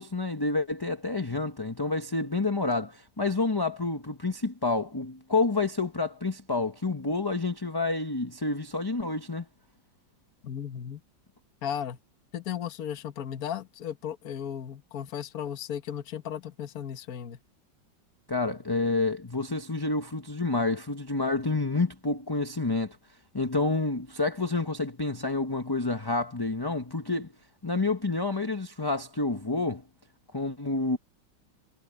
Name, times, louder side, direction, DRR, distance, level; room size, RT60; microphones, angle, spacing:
voice 1, 0.0-9.4 18.3-23.0 23.3-27.3 27.6-29.8 30.3-31.0, left 3 dB, 15° left, 0.9 m, -29 dB
voice 2, 10.4-11.0 11.6-12.0 12.3-17.4, left 9 dB, 55° left, 1.7 m, -35 dB
omnidirectional pair, 2.0 m